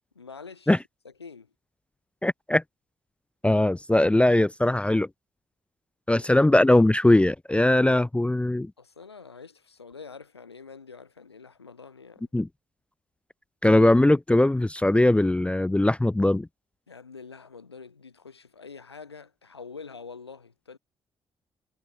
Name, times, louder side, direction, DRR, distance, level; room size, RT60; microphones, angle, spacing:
voice 1, 0.2-0.8 1.0-1.5 6.1-6.5 8.8-12.2 16.9-20.8, left 5 dB, 85° left, 7.3 m, -45 dB
voice 2, 2.2-2.6 3.4-5.1 6.1-8.7 12.3-12.5 13.6-16.5, left 1 dB, 10° left, 0.5 m, -20 dB
figure-of-eight pair, 40°, 13 cm